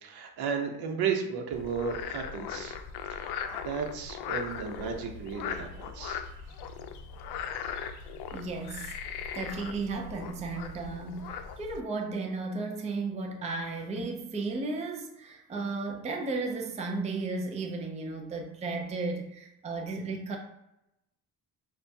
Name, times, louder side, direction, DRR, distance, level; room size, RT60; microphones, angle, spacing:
voice 1, 0.0-2.8 3.1-6.3, right 6 dB, 70° right, 3 dB, 0.9 m, -34 dB
Frog, 1.5-11.8, left 7 dB, 85° left, 0.5 m, -39 dB
voice 2, 8.3-20.4, right 3 dB, 20° right, 1 dB, 0.5 m, -34 dB
6.6 x 2.3 x 2.7 m, 0.87 s
cardioid pair, 130°, 38 cm